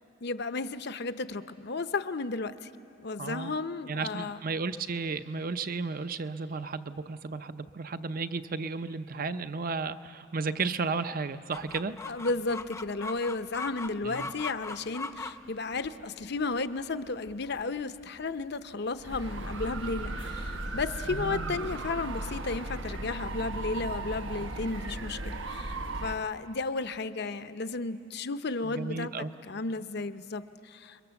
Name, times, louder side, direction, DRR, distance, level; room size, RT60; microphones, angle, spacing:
voice 1, 0.2-2.7 3.0-4.4 12.1-29.1 29.4-31.0, left 3 dB, 55° left, 11 dB, 0.7 m, -33 dB
voice 2, 3.2-3.5 3.9-11.9 14.0-14.3 21.1-21.6 28.6-29.3, right 4 dB, 45° right, 11 dB, 0.6 m, -34 dB
Chicken rooster, 11.5-22.6, left 3 dB, 15° left, 0.6 m, -43 dB
sound 1, 19.0-26.2, right 2 dB, 80° right, 1.1 m, -36 dB
29.5 x 23.0 x 7.1 m, 2.7 s
head